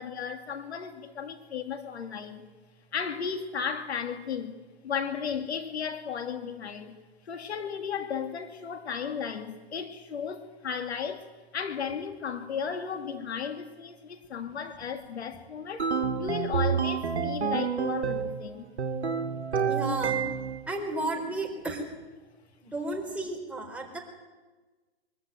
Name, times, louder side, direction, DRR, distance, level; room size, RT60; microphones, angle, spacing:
voice 1, 0.0-2.5 2.9-7.0 7.2-18.7, left 7 dB, 75° left, 2.1 m, -35 dB
sound 1, 15.8-18.4 18.8-20.6, right 6 dB, 90° right, 1.3 m, -29 dB
voice 2, 19.7-20.2 20.7-21.8 22.6-24.0, right 2 dB, 5° right, 4.1 m, -33 dB
23.0 x 14.0 x 9.2 m
hypercardioid pair, 135°, 33 cm